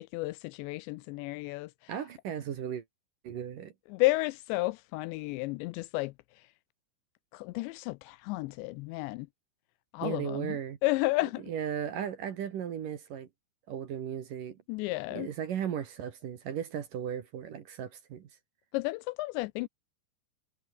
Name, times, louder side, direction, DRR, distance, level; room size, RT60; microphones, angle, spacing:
voice 1, 0.0-1.9 3.9-6.1 7.3-9.3 9.9-11.4 14.7-15.3 18.7-19.7, left 21 dB, 85° left, 2.7 m, -32 dB
voice 2, 1.9-2.8 3.2-3.7 10.0-10.8 11.5-13.3 13.7-14.6 15.1-18.3, right 9 dB, 55° right, 2.8 m, -36 dB
omnidirectional pair, 5.3 m